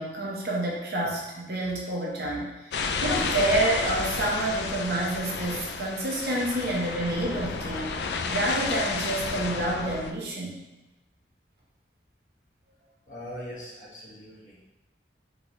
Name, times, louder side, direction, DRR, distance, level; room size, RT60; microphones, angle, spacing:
voice 1, 0.0-10.6, right 1 dB, 60° right, -3 dB, 1.1 m, -28 dB
sound 1, 2.7-10.1, left 4 dB, 70° left, 0.4 m, -31 dB
voice 2, 13.1-14.6, equal, 45° left, -7 dB, 1.4 m, -41 dB
4.2 x 3.9 x 3.1 m, 1.0 s
head